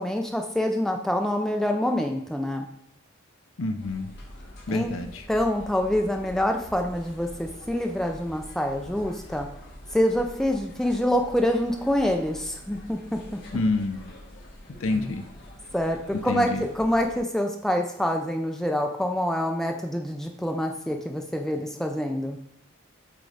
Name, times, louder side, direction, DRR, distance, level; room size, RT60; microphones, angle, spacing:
voice 1, 0.0-2.7 4.7-4.9 5.3-9.5 9.9-13.2 14.9-15.1 15.7-22.4, left 1 dB, ahead, 2 dB, 0.5 m, -26 dB
voice 2, 3.6-4.1 4.7-5.2 13.5-14.0 14.8-15.2 16.3-16.6, left 2 dB, 70° left, 6 dB, 0.7 m, -27 dB
sound 1, 3.8-17.2, equal, 50° left, 1.5 m, -45 dB
7.8 x 3.7 x 3.4 m, 0.73 s
head